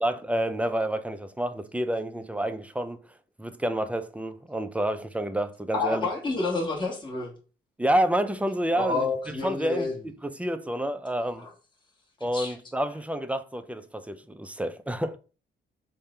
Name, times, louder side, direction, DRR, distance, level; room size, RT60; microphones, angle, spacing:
voice 1, 0.0-3.0 3.4-6.1 7.8-9.9 10.2-11.5 12.2-15.2, right 1 dB, 5° right, 0.4 m, -29 dB
voice 2, 5.7-7.3 8.7-9.9 11.4-11.5 12.3-12.5, left 3 dB, 20° left, 1.2 m, -29 dB
3.5 x 2.1 x 4.2 m
cardioid pair, 70°, 21 cm